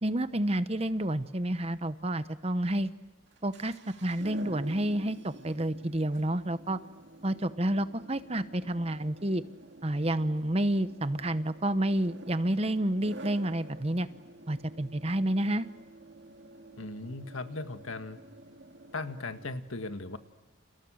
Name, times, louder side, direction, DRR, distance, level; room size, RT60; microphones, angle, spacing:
voice 1, 0.0-2.9 3.4-3.7 4.0-6.8 7.2-9.4 9.8-14.1 14.5-15.7, right 1 dB, 30° right, 12 dB, 1.0 m, -29 dB
sound 1, 3.3-19.6, right 1 dB, 60° right, 2.4 m, -49 dB
voice 2, 16.8-18.2 18.9-20.2, left 2 dB, 90° left, 9 dB, 1.8 m, -38 dB
30.0 x 29.5 x 6.5 m, 1.1 s
head